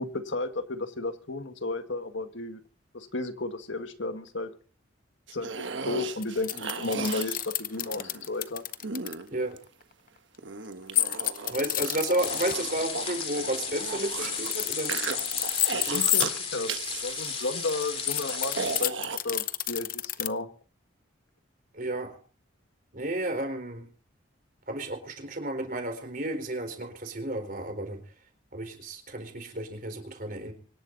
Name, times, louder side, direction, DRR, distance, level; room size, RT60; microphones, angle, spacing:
voice 1, 0.0-2.6 2.9-4.5 5.3-8.6 15.7-16.7 17.0-20.5, left 2 dB, 70° left, 8 dB, 1.7 m, -33 dB
sound 1, 5.3-8.3 8.8-9.8 10.4-14.5 14.9-16.4 16.7-19.2, right 5 dB, 70° right, 1.3 m, -36 dB
sound 2, 6.2-9.1 10.9-12.5 14.3-16.3 17.1-20.3, left 13 dB, 45° left, 0.8 m, -29 dB
voice 2, 11.5-14.9 15.9-16.1 21.7-22.2 22.9-23.8 24.7-28.0 28.5-30.5, right 1 dB, 45° right, 6 dB, 4.2 m, -32 dB
sound 3, 12.2-18.8, left 6 dB, 30° left, 3.1 m, -34 dB
25.5 x 11.5 x 4.0 m, 0.39 s
head